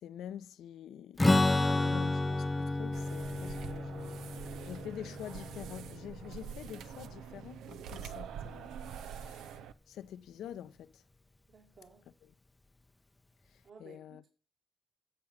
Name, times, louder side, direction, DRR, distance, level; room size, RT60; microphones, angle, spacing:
voice 1, 0.0-4.2 4.6-11.0 12.2-12.3 13.5-14.2, left 10 dB, 80° left, 0.9 m, -47 dB
Strum, 1.2-6.8, left 2 dB, 15° left, 0.7 m, -31 dB
sound 1, 2.9-9.7, right 8 dB, 85° right, 0.8 m, -45 dB
voice 2, 11.5-12.1 13.6-14.3, right 5 dB, 55° right, 2.6 m, -57 dB
10.0 x 7.9 x 7.4 m
cardioid pair, 110°, 0 cm